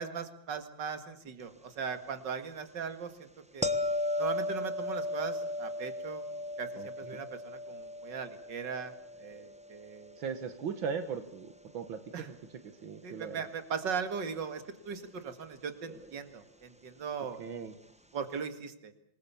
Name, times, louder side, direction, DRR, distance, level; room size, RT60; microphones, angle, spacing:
voice 1, 0.0-3.3 3.5-3.9 4.2-6.2 6.6-8.9 9.2-10.2 12.1-12.3 13.0-17.4 18.1-18.9, right 6 dB, 65° right, 9 dB, 2.6 m, -39 dB
sound 1, 3.6-10.6 15.9-16.0, left 1 dB, 5° right, 0.9 m, -36 dB
voice 2, 6.8-7.2 10.2-12.0 12.3-12.4 12.8-13.4 17.4-17.7, right 6 dB, 85° right, 9 dB, 2.2 m, -38 dB
27.5 x 21.0 x 7.0 m, 0.73 s
omnidirectional pair, 2.1 m